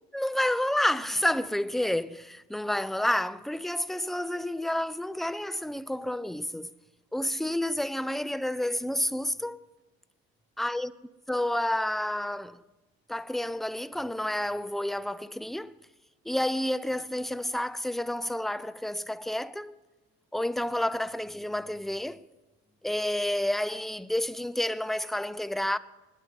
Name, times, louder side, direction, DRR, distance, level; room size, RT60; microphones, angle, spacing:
voice 1, 0.1-6.7 7.1-9.6 10.6-10.9 11.3-12.6 13.1-15.8 16.2-19.8 20.3-22.3 22.8-25.8, left 1 dB, ahead, 0.6 m, -30 dB
20.5 x 8.3 x 7.7 m
hypercardioid pair, 55°, 33 cm